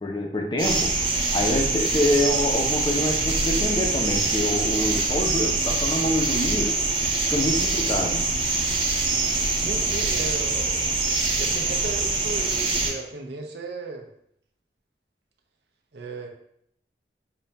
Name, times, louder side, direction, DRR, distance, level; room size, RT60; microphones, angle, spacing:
voice 1, 0.0-6.8 7.3-8.3, left 1 dB, 25° left, 2 dB, 0.4 m, -26 dB
sound 1, 0.6-12.9, right 3 dB, 30° right, 0.6 m, -24 dB
voice 2, 9.5-10.8 11.4-14.1 15.9-16.3, right 3 dB, 80° right, 3 dB, 0.5 m, -35 dB
5.3 x 2.6 x 2.2 m, 0.71 s
head